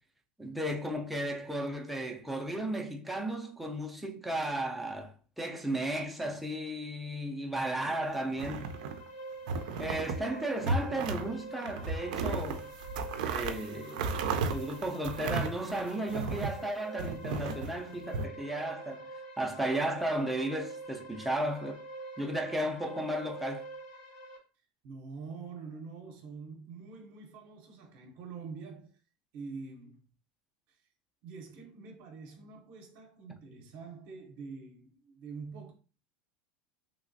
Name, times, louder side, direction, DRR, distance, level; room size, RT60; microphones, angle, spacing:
voice 1, 0.4-8.8 9.8-12.7 13.2-19.1 19.4-21.8 22.2-23.7, right 1 dB, ahead, 0.4 m, -34 dB
sound 1, 8.0-24.4, right 2 dB, 80° left, 1.2 m, -46 dB
sound 2, 8.3-9.1 9.5-10.2 10.6-11.3 11.6-16.6 17.0-18.2, right 4 dB, 85° right, 0.4 m, -34 dB
voice 2, 24.8-29.0 29.3-30.1 31.2-35.7, right 4 dB, 50° right, 0.6 m, -45 dB
3.2 x 2.9 x 2.6 m
supercardioid pair, 160°, 4 cm